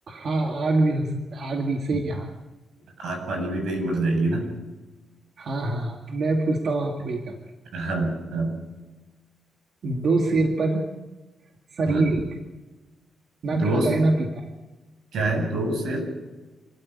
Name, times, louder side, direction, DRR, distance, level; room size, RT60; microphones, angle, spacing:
voice 1, 0.1-2.3 5.4-7.3 9.8-10.9 11.7-12.2 13.4-14.5, right 2 dB, 45° right, 2 dB, 2.3 m, -24 dB
voice 2, 3.0-4.5 7.7-8.6 11.9-12.1 13.5-13.9 15.1-16.0, right 2 dB, 85° right, 3 dB, 7.7 m, -26 dB
28.0 x 13.0 x 9.9 m, 1.2 s
wide cardioid pair, 175°, 0 cm